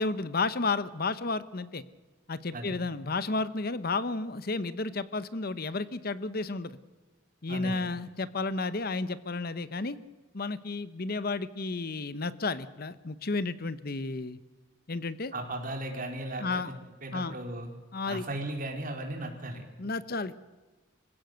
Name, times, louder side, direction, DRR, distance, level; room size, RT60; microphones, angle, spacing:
voice 1, 0.0-1.8 2.3-6.7 7.4-10.0 10.3-14.4 14.9-15.3 16.4-16.7 17.1-17.3 17.9-18.2 19.8-20.4, left 3 dB, 50° left, 15 dB, 0.9 m, -32 dB
voice 2, 7.5-7.9 15.3-16.6 17.0-17.7 18.1-19.6, right 1 dB, 45° right, 3 dB, 4.4 m, -36 dB
26.0 x 16.0 x 7.9 m, 1.2 s
head